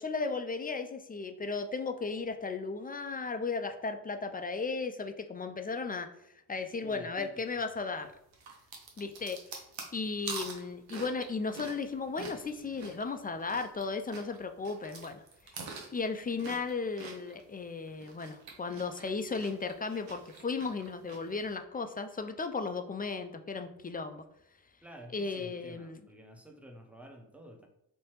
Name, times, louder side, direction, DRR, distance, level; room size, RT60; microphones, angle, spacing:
voice 1, 0.0-6.1 6.5-8.1 9.0-9.4 9.9-15.7 15.9-24.2 25.1-26.0, left 4 dB, 25° left, 7 dB, 0.3 m, -35 dB
voice 2, 6.8-7.6 24.8-27.7, equal, 5° right, 3 dB, 0.7 m, -50 dB
sound 1, 8.3-13.8 14.1-17.4 17.9-21.4, right 4 dB, 85° right, 0.7 m, -45 dB
3.2 x 2.6 x 3.0 m, 0.82 s
supercardioid pair, 40°, 43 cm